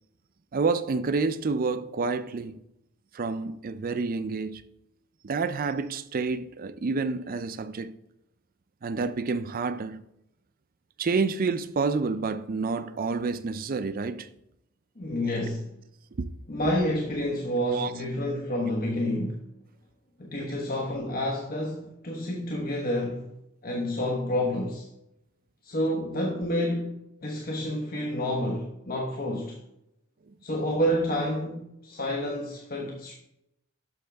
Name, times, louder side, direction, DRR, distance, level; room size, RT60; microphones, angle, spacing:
voice 1, 0.5-2.6 3.1-4.6 5.2-8.0 8.8-10.0 11.0-14.3 15.2-15.3 16.2-16.3 17.7-17.9 20.4-20.5 30.3-30.4, right 4 dB, 40° right, 0.4 m, -29 dB
voice 2, 15.0-15.7 16.5-19.4 20.2-23.3 23.6-24.9 25.6-27.0 27.2-29.6 30.4-33.1, left 1 dB, 45° left, 1.1 m, -29 dB
12.0 x 6.5 x 3.4 m
head